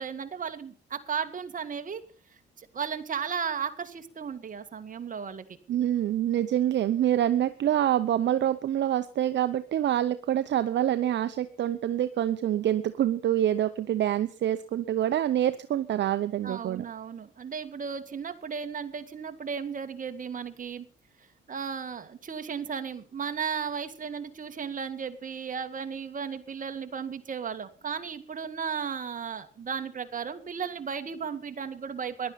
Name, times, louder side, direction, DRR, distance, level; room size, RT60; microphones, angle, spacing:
voice 1, 0.0-2.0 2.6-5.4 16.4-20.9 21.5-32.3, right 6 dB, 40° right, 7 dB, 2.1 m, -35 dB
voice 2, 5.7-16.8, right 11 dB, 65° right, 11 dB, 0.9 m, -26 dB
15.5 x 11.5 x 5.8 m, 0.39 s
cardioid pair, 90°, 20 cm